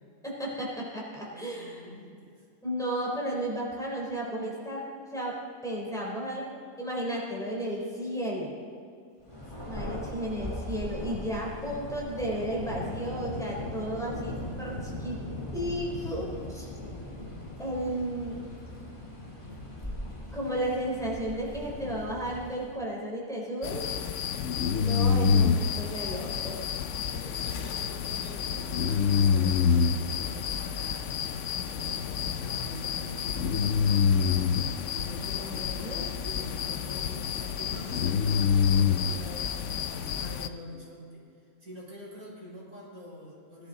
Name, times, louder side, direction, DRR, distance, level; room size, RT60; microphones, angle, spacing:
voice 1, 0.2-1.9 2.6-5.4 5.6-6.5 6.8-8.6 9.6-15.2 15.5-16.7 17.6-18.4 20.3-23.9 24.7-26.7 35.3-36.1, right 1 dB, ahead, -4 dB, 3.3 m, -33 dB
voice 2, 1.2-2.4 9.4-9.8 27.0-31.1 31.7-39.6 39.9-41.3 41.6-43.7, equal, 75° right, -6 dB, 4.5 m, -46 dB
Thunder, 9.2-22.9, left 1 dB, 20° left, 2.5 m, -39 dB
sound 1, 23.6-40.5, left 6 dB, 65° left, 0.8 m, -27 dB
17.5 x 11.5 x 3.8 m, 2.4 s
omnidirectional pair, 1.5 m